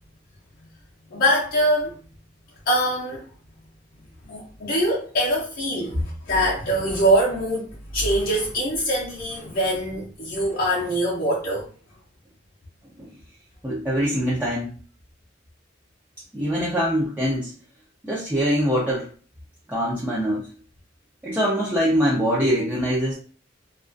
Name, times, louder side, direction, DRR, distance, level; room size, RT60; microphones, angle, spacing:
voice 1, 1.1-2.0 2.7-3.3 4.2-11.7, equal, 50° left, -5 dB, 0.5 m, -23 dB
voice 2, 13.6-14.7 16.3-17.5 18.0-19.1 19.7-20.5 21.2-23.2, equal, 10° right, -6 dB, 0.4 m, -23 dB
2.3 x 2.2 x 2.5 m, 0.41 s
head